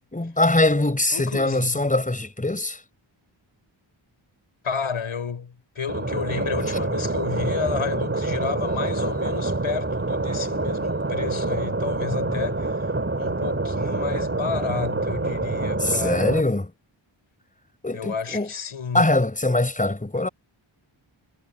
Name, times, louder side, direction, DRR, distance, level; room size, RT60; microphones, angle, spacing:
voice 1, 0.1-2.8 15.8-16.7 17.8-18.5 18.9-20.3, left 2 dB, 15° left, 5.1 m, -22 dB
voice 2, 1.1-1.8 4.6-12.9 13.2-16.3 17.9-19.0, left 6 dB, 90° left, 5.9 m, -31 dB
sound 1, 5.9-16.4, right 2 dB, 25° right, 4.1 m, -26 dB
wide cardioid pair, 145°, 48 cm